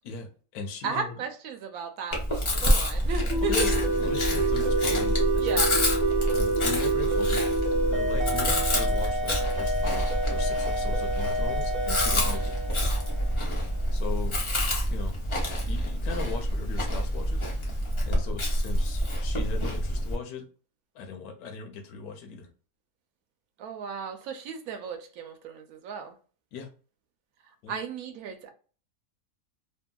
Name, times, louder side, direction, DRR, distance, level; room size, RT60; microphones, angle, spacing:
voice 1, 0.0-1.1 3.4-5.6 6.3-7.4 7.8-12.5 13.9-14.4 14.9-15.1 15.7-20.5 20.9-22.5 26.5-26.7 27.6-27.7, left 5 dB, 80° left, 1.1 m, -38 dB
voice 2, 0.8-3.7 5.4-5.7 12.1-12.5 23.6-26.2 27.7-28.5, right 6 dB, 75° right, 1.0 m, -35 dB
Chewing mastication, 2.1-20.1, equal, 35° left, 0.4 m, -27 dB
sound 1, 3.3-13.6, right 2 dB, 45° right, 0.6 m, -28 dB
2.7 x 2.6 x 2.2 m
omnidirectional pair, 1.6 m